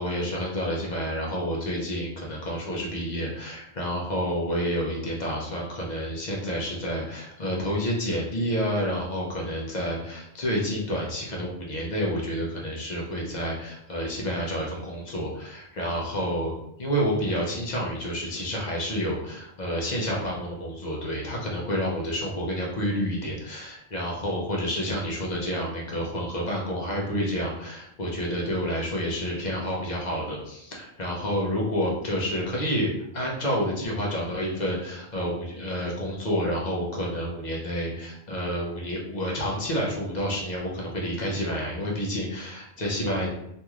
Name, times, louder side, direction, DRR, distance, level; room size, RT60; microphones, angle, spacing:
voice 1, 0.0-16.5 16.8-43.3, equal, 50° left, -3 dB, 0.7 m, -29 dB
3.0 x 2.6 x 2.3 m, 0.78 s
omnidirectional pair, 1.1 m